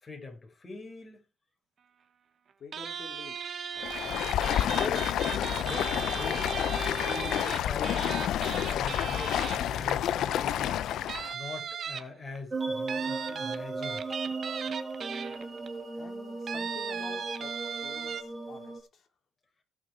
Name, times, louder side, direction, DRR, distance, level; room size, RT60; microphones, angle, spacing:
voice 1, 0.0-1.2 4.6-6.5 7.0-8.3 8.6-10.8 11.3-14.0, left 3 dB, 30° left, 5.0 m, -42 dB
voice 2, 2.6-3.4 15.9-17.5 17.8-19.1, left 5 dB, 55° left, 3.2 m, -49 dB
sound 1, 2.7-10.1 10.6-10.7 11.1-12.4 12.9-15.7 16.5-18.2, right 7 dB, 55° right, 1.3 m, -37 dB
Stream, 3.8-11.3, left 11 dB, 80° left, 0.7 m, -29 dB
sound 2, 12.5-18.8, right 3 dB, 25° right, 3.1 m, -36 dB
17.5 x 5.8 x 4.6 m
cardioid pair, 90°, 0 cm